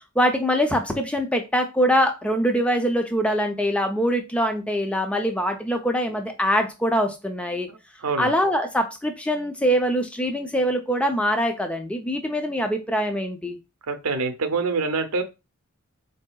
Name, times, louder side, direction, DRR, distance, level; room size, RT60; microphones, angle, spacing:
voice 1, 0.2-7.7 8.2-13.6, equal, 5° left, 0.4 m, -23 dB
voice 2, 7.7-8.3 13.9-15.2, right 4 dB, 85° right, 0.6 m, -26 dB
3.8 x 2.7 x 2.2 m
head